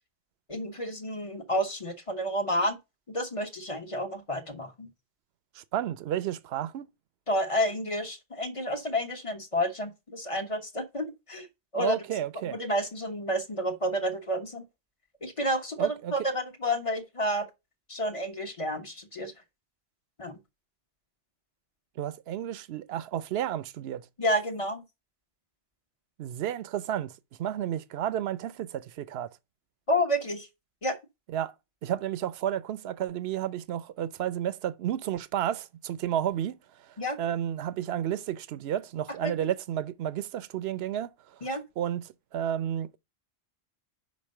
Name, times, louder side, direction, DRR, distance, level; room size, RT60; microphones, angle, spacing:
voice 1, 0.5-2.8 3.1-4.9 7.3-11.5 11.7-11.9 12.5-14.7 15.2-17.5 17.9-19.3 20.2-20.4 24.2-24.8 29.9-30.5 30.8-31.0 37.0-37.2 39.2-39.3 41.4-41.6, equal, 30° left, 1.1 m, -30 dB
voice 2, 5.5-6.9 11.7-12.6 15.8-16.1 22.0-24.1 26.2-29.3 31.3-31.5 31.8-41.4 41.8-43.0, right 11 dB, 65° right, 0.8 m, -32 dB
5.3 x 5.3 x 6.4 m
omnidirectional pair, 1.2 m